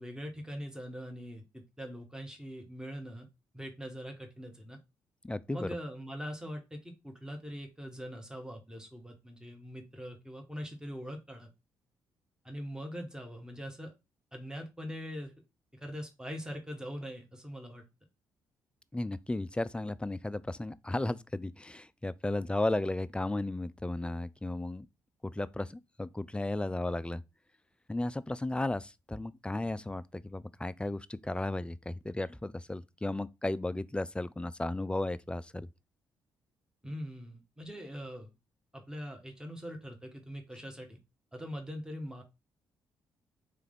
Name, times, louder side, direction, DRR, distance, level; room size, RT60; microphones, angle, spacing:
voice 1, 0.0-3.3 3.5-4.8 5.5-11.5 12.4-13.9 14.3-15.3 15.7-17.8 36.8-38.3 38.7-41.0 41.3-42.2, equal, 5° right, 1.3 m, -42 dB
voice 2, 5.2-5.7 18.9-24.9 25.3-27.2 27.9-35.7, left 2 dB, 10° left, 0.4 m, -34 dB
3.4 x 3.2 x 3.6 m
hypercardioid pair, 45°, 10 cm